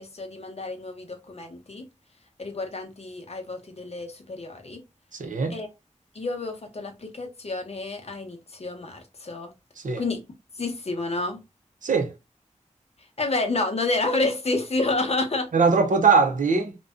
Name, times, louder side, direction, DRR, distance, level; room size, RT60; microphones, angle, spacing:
voice 1, 0.0-1.9 2.4-4.8 5.5-5.7 6.1-9.5 10.0-10.2 10.6-11.4 13.2-15.5, left 2 dB, 50° left, 0.7 m, -29 dB
voice 2, 5.1-5.6 9.8-10.0 11.8-12.1 15.5-16.8, right 4 dB, 75° right, 0.5 m, -21 dB
2.5 x 2.2 x 2.3 m
cardioid pair, 40°, 13 cm